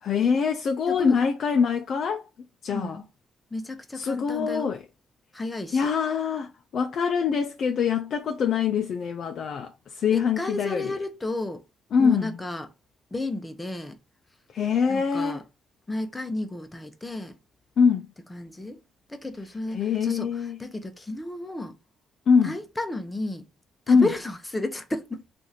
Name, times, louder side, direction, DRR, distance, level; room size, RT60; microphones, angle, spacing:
voice 1, 0.0-2.2 2.6-3.0 3.9-4.8 5.7-11.0 11.9-12.4 14.5-15.4 17.8-18.1 19.7-20.6 22.3-22.6 23.9-24.1, left 6 dB, 60° left, 0.4 m, -24 dB
voice 2, 2.7-3.0 3.5-4.7 5.3-5.8 10.1-11.6 12.0-12.7 13.1-14.0 14.9-15.4 15.9-17.3 18.3-18.8 19.1-20.3 20.6-21.8 22.4-23.4 23.9-25.2, left 2 dB, 15° left, 0.7 m, -32 dB
2.9 x 2.5 x 3.9 m
cardioid pair, 90°, 0 cm